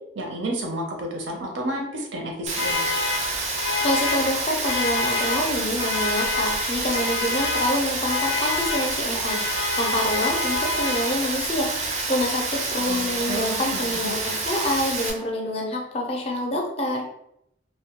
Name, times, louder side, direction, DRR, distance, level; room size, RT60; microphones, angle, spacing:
voice 1, 0.2-2.8 12.9-14.1, right 1 dB, 85° right, 2 dB, 0.6 m, -31 dB
sound 1, 2.5-11.6, left 4 dB, 90° left, 0.4 m, -28 dB
Rain, 2.5-15.1, right 3 dB, 35° right, 0.4 m, -28 dB
voice 2, 3.8-11.7 12.1-17.0, left 1 dB, 30° left, 0 dB, 0.4 m, -27 dB
2.2 x 2.1 x 2.8 m, 0.78 s
head